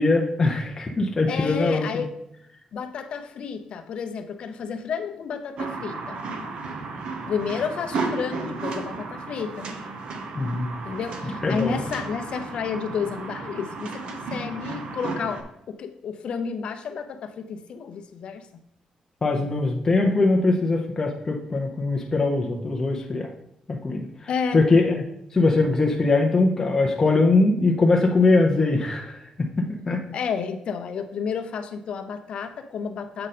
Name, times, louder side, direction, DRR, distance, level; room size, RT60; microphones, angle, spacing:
voice 1, 0.0-2.0 10.3-10.7 11.2-11.8 19.2-23.3 23.7-24.1 24.5-24.9 25.3-29.2 29.6-30.0, left 3 dB, 20° left, 0 dB, 0.7 m, -21 dB
voice 2, 1.3-2.1 2.7-6.2 7.3-9.7 10.9-18.5 24.3-24.6 30.1-33.3, left 6 dB, 55° left, 7 dB, 0.7 m, -31 dB
sound 1, 5.6-15.4, right 3 dB, 55° right, 0.8 m, -33 dB
7.6 x 5.2 x 4.2 m, 0.80 s
cardioid pair, 175°, 2 cm